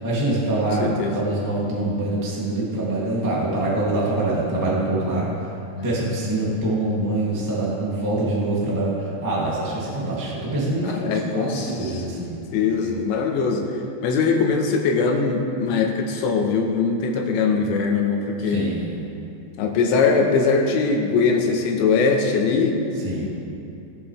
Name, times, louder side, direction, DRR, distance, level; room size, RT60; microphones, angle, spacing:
voice 1, 0.0-5.3 5.7-12.4 18.4-19.1 23.0-23.3, right 2 dB, 10° right, -7 dB, 0.8 m, -25 dB
voice 2, 0.8-1.2 10.8-12.2 12.5-13.6 14.0-18.7 19.6-22.8 23.2-23.3, left 4 dB, 90° left, 2 dB, 3.3 m, -21 dB
20.5 x 7.6 x 3.3 m, 2.7 s
omnidirectional pair, 5.1 m